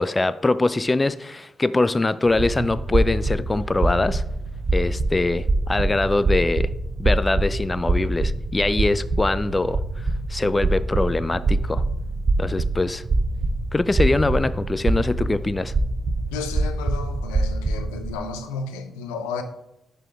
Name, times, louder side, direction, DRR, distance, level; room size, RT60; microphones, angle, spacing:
voice 1, 0.0-4.2 4.7-6.7 7.0-9.8 10.3-11.8 12.4-13.0 13.7-15.7, left 2 dB, 25° left, 0.3 m, -23 dB
sound 1, 2.3-18.2, right 2 dB, 50° right, 1.0 m, -24 dB
voice 2, 16.3-19.4, left 5 dB, 85° left, 0.5 m, -32 dB
10.5 x 4.0 x 3.4 m
hypercardioid pair, 40°, 0 cm